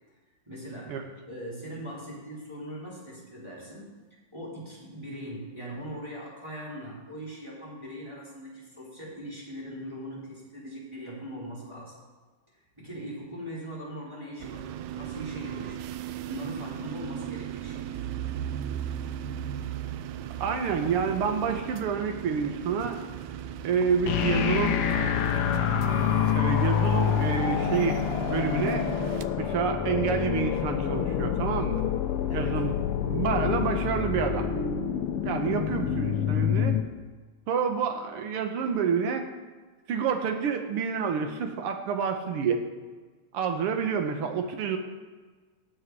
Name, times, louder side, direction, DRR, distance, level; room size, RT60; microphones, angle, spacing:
voice 1, 0.5-3.9 4.3-11.9 12.8-15.8 16.2-18.0 32.3-32.6, equal, 10° right, -7 dB, 3.7 m, -40 dB
sound 1, 14.4-29.3, right 10 dB, 90° right, 2.1 m, -37 dB
voice 2, 20.4-23.1 23.6-24.8 26.3-28.0 28.3-28.8 29.4-31.8 32.3-32.7 33.0-34.5 35.2-36.8 37.5-39.2 39.9-42.6 43.3-44.8, right 6 dB, 60° right, 5 dB, 1.7 m, -28 dB
sound 2, 24.1-36.8, left 9 dB, 70° left, 1.4 m, -27 dB
18.0 x 8.2 x 4.8 m, 1.4 s
omnidirectional pair, 3.4 m